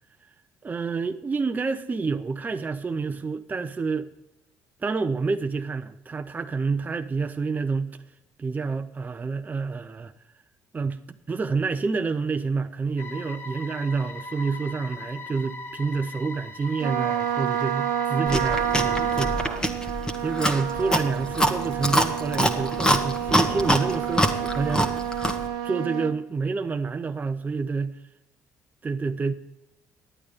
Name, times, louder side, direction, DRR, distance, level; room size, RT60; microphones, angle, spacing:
voice 1, 0.6-4.1 4.8-8.0 8.4-10.1 10.7-11.0 11.3-19.8 20.2-24.9 25.6-28.0 28.8-29.3, right 4 dB, 25° right, 0.6 m, -28 dB
sound 1, 13.0-19.3, left 2 dB, 35° left, 0.9 m, -39 dB
Trumpet, 16.8-26.1, right 10 dB, 80° right, 0.9 m, -29 dB
Chewing mastication, 18.3-25.5, equal, 10° left, 1.3 m, -25 dB
11.0 x 8.7 x 5.1 m
cardioid pair, 85°, 7 cm